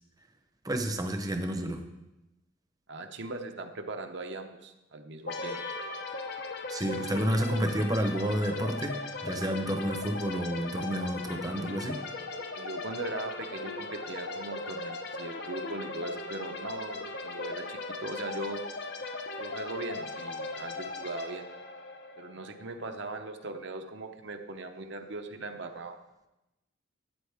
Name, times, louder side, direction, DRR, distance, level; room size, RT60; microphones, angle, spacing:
voice 1, 0.6-1.8 6.7-12.0, right 1 dB, 20° right, 6 dB, 0.8 m, -30 dB
voice 2, 2.9-5.6 12.5-18.6 19.4-21.5 22.2-26.0, right 2 dB, 60° right, 5 dB, 0.8 m, -39 dB
sound 1, 5.3-22.9, left 3 dB, 55° left, 0.9 m, -38 dB
13.0 x 8.7 x 3.5 m, 0.96 s
head